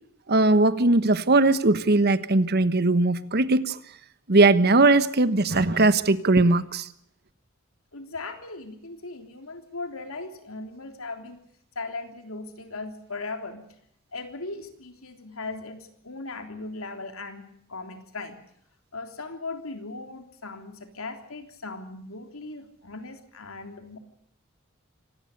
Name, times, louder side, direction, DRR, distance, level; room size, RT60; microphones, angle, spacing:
voice 1, 0.3-3.8 4.3-6.9, right 2 dB, 50° right, 1.2 m, -20 dB
voice 2, 7.9-11.4 11.8-13.7 14.1-18.4 18.9-24.0, left 3 dB, 90° left, 3.5 m, -38 dB
25.5 x 18.5 x 6.7 m
head